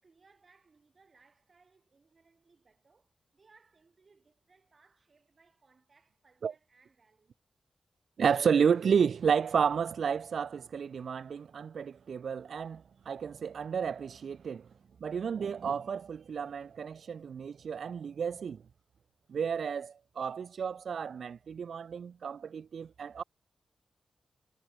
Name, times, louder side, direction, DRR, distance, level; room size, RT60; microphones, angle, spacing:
voice 1, 0.0-7.4, right 4 dB, 40° right, 3.1 m, -66 dB
voice 2, 8.2-14.7 15.0-18.6 19.3-23.2, right 7 dB, 70° right, 0.3 m, -31 dB
wide cardioid pair, 125°, 0 cm